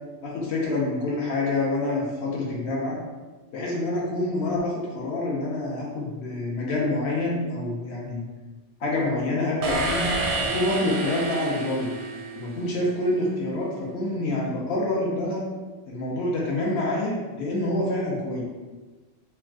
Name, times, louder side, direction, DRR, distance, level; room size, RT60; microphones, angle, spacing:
voice 1, 0.2-3.0 3.5-8.2 8.8-10.2 10.4-11.9 12.3-15.5 15.9-18.4, left 2 dB, 70° left, -4 dB, 0.9 m, -27 dB
sound 1, 9.6-12.8, right 2 dB, 60° right, 0.6 m, -29 dB
3.3 x 2.2 x 2.4 m, 1.2 s
omnidirectional pair, 1.2 m